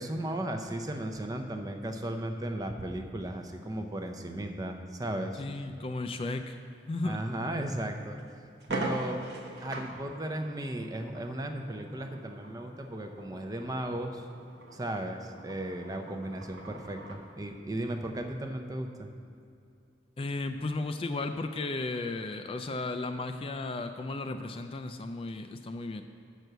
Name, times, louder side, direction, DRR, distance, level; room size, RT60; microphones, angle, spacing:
voice 1, 0.0-5.4 7.0-8.2 8.7-9.2 9.6-14.3 14.7-19.1, right 1 dB, 20° right, 4 dB, 0.6 m, -35 dB
voice 2, 5.4-6.6 6.9-7.2 20.2-26.0, left 2 dB, 30° left, 7 dB, 0.3 m, -34 dB
sound 1, 7.6-7.7 8.2-8.3 8.6-17.3, right 2 dB, 70° right, 1.1 m, -42 dB
7.8 x 6.1 x 6.7 m, 2.6 s
head